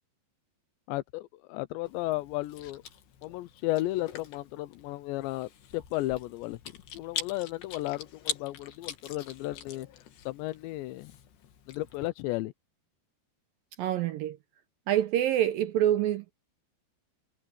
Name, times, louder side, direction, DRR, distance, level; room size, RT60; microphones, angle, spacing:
voice 1, 0.9-2.8 3.2-6.6 6.9-9.9 10.3-11.1 11.7-12.5, left 18 dB, 90° left, 3.1 m, -34 dB
Chewing mastication, 1.9-12.1, left 9 dB, 75° left, 4.3 m, -43 dB
voice 2, 13.8-14.4 14.9-16.3, right 12 dB, 80° right, 2.1 m, -26 dB
omnidirectional pair, 5.0 m